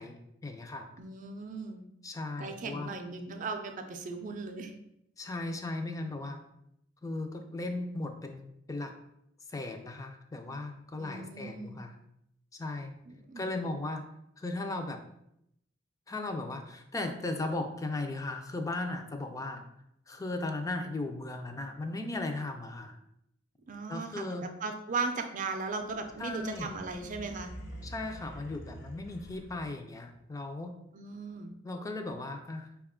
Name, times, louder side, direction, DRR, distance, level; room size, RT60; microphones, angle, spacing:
voice 1, 0.0-0.9 2.0-2.9 5.2-6.4 7.0-8.9 9.5-12.0 12.6-13.0 13.4-14.0 14.4-15.0 16.1-19.6 20.1-23.0 23.9-24.5 26.2-26.8 27.8-30.8 31.6-32.7, left 2 dB, 20° left, 5 dB, 0.4 m, -37 dB
voice 2, 1.0-1.9 2.4-4.7 10.9-11.8 13.3-13.6 23.7-27.5 30.9-31.5, right 4 dB, 45° right, 6 dB, 0.4 m, -37 dB
sound 1, 25.7-30.0, right 1 dB, 65° left, 1.1 m, -47 dB
4.8 x 2.3 x 3.5 m, 0.78 s
head